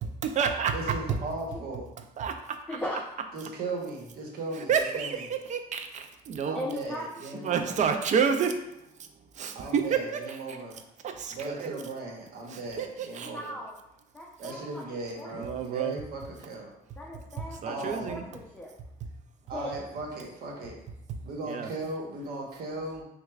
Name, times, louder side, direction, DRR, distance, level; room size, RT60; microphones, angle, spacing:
voice 1, 0.0-1.2 2.2-2.6 4.6-6.6 7.4-8.6 9.0-9.1 9.3-10.6 11.0-11.8 12.5-13.3 15.3-16.0 17.4-18.2 21.1-21.2 21.5-21.7, right 6 dB, 45° right, 7 dB, 0.4 m, -29 dB
voice 2, 0.7-1.9 3.3-5.2 6.4-7.8 9.5-10.8 11.3-13.6 14.4-16.7 17.6-18.2 19.5-20.8 21.2-23.0, right 2 dB, 65° right, -1 dB, 1.1 m, -37 dB
voice 3, 2.7-3.0 6.5-7.0 7.3-7.5 13.2-13.8 14.1-15.8 17.0-18.7 19.4-19.7, left 1 dB, 10° left, -4 dB, 0.6 m, -39 dB
6.1 x 2.3 x 2.4 m, 0.85 s
cardioid pair, 110°, 17 cm